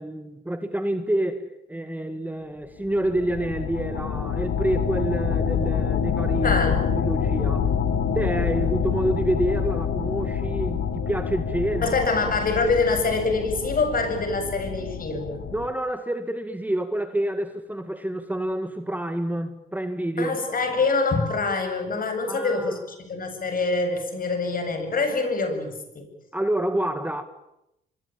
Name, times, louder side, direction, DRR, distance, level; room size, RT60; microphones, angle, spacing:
voice 1, 0.0-6.6 6.9-7.7 8.1-11.9 15.5-20.4 22.3-22.8 26.3-27.2, right 1 dB, 10° right, 1.9 m, -28 dB
sound 1, 2.8-15.7, left 7 dB, 70° left, 3.6 m, -27 dB
voice 2, 6.4-6.8 11.8-15.4 20.2-26.1, left 3 dB, 45° left, 7.9 m, -25 dB
25.0 x 24.5 x 9.0 m
cardioid pair, 90°, 20 cm